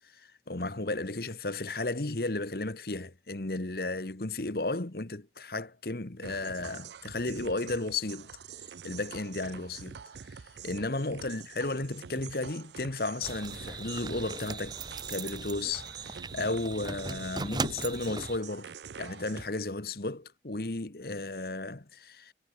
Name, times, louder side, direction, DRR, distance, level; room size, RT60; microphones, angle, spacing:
voice 1, 0.2-8.3 8.8-10.0 10.6-14.8 15.1-22.3, left 2 dB, 55° left, 1.3 m, -34 dB
sound 1, 6.2-19.5, right 6 dB, 75° right, 0.5 m, -46 dB
sound 2, 13.2-18.4, right 3 dB, 25° right, 1.4 m, -38 dB
head